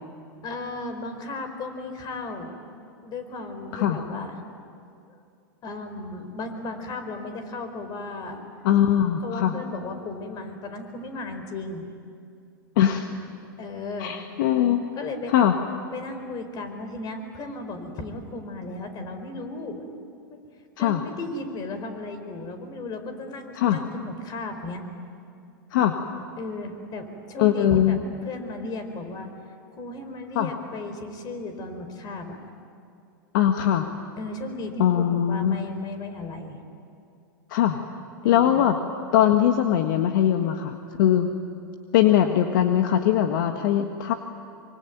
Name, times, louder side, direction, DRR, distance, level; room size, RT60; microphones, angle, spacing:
voice 1, 0.4-2.5 3.0-4.4 5.1-5.2 5.6-8.4 9.2-11.8 13.6-14.1 14.9-15.6 15.9-19.8 20.3-20.4 20.8-24.9 26.4-28.0 28.2-29.3 29.8-32.4 34.2-36.6 38.2-38.6, left 2 dB, 35° left, 7 dB, 4.7 m, -35 dB
voice 2, 8.6-9.5 12.8-13.1 14.0-14.8 15.3-15.6 20.8-21.0 23.6-23.8 25.7-25.9 27.4-28.0 30.3-30.5 33.3-33.9 34.8-35.6 37.5-37.8 38.2-38.7 39.1-41.3 41.9-44.1, left 10 dB, 65° left, 5 dB, 1.6 m, -21 dB
25.5 x 24.5 x 9.4 m, 2.4 s
hypercardioid pair, 110°, 12 cm